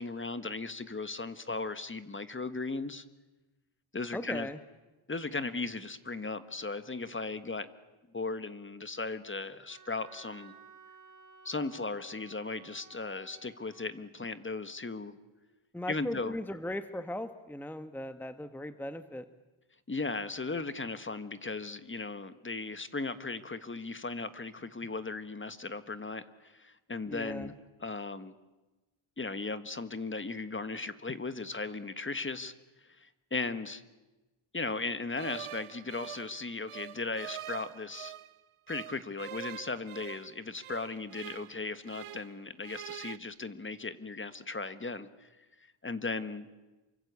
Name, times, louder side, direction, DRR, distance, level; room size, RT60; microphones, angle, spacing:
voice 1, 0.0-3.0 3.9-4.5 5.1-7.7 8.1-10.5 11.4-15.2 15.9-16.3 19.9-27.5 27.8-28.3 29.2-32.5 33.0-33.8 34.5-38.1 38.7-45.3 45.8-46.5, left 3 dB, 25° left, 12 dB, 1.5 m, -37 dB
voice 2, 4.1-4.6 15.7-19.2 27.1-27.5, left 1 dB, 5° left, 10 dB, 1.1 m, -38 dB
Wind instrument woodwind instrument, 9.7-13.9, right 5 dB, 35° right, 3.1 m, -56 dB
sound 1, 35.2-38.3 38.7-42.4 42.6-43.2, right 13 dB, 90° right, 0.9 m, -45 dB
28.0 x 24.5 x 8.3 m, 1.1 s
cardioid pair, 100°, 49 cm